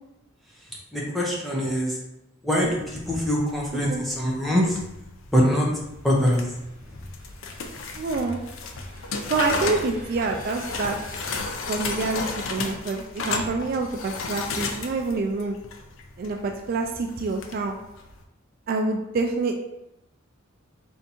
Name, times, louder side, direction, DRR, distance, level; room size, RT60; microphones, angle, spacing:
voice 1, 0.9-2.0 2.4-4.8 5.3-5.7 6.0-6.5 6.9-7.0, equal, ahead, -4 dB, 0.7 m, -23 dB
sound 1, 2.6-18.2, left 3 dB, 75° left, 0.5 m, -34 dB
sound 2, 5.8-11.4, equal, 40° left, 1.4 m, -46 dB
voice 2, 8.0-8.4 9.3-11.0 11.7-15.6 16.2-17.8 18.7-19.5, right 3 dB, 45° right, 3 dB, 0.3 m, -27 dB
3.4 x 2.7 x 4.2 m, 0.88 s
head